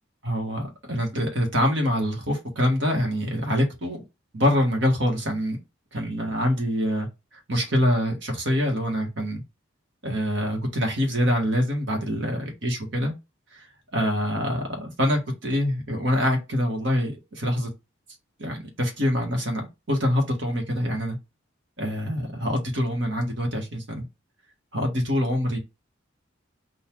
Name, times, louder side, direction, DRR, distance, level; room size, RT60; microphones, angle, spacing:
voice 1, 0.2-4.0 4.3-5.6 5.9-7.1 7.5-9.4 10.0-13.1 13.5-13.7 13.9-17.7 18.4-21.2 21.8-24.0 24.7-25.6, equal, 60° right, 1.5 m, -25 dB
4.0 x 2.6 x 4.6 m
head